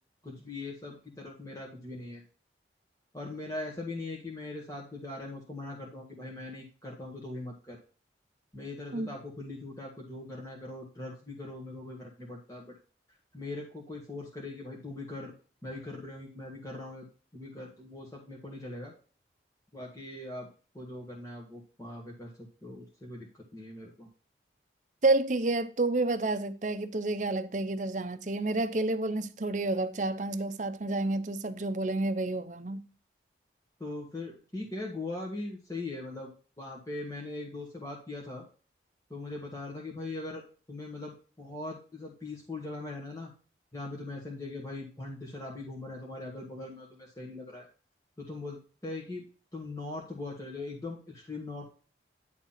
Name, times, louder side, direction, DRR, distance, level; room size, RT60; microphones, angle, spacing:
voice 1, 0.2-2.2 3.1-7.8 8.5-12.8 13.3-15.3 15.6-17.0 17.3-18.9 19.7-20.5 20.7-24.1 33.8-36.3 36.6-38.4 39.1-40.4 40.7-43.3 43.7-47.7 48.2-49.2 49.5-51.6, left 2 dB, 20° left, 1.7 m, -40 dB
voice 2, 25.0-32.8, right 2 dB, 40° right, 0.7 m, -29 dB
10.5 x 3.6 x 5.7 m
head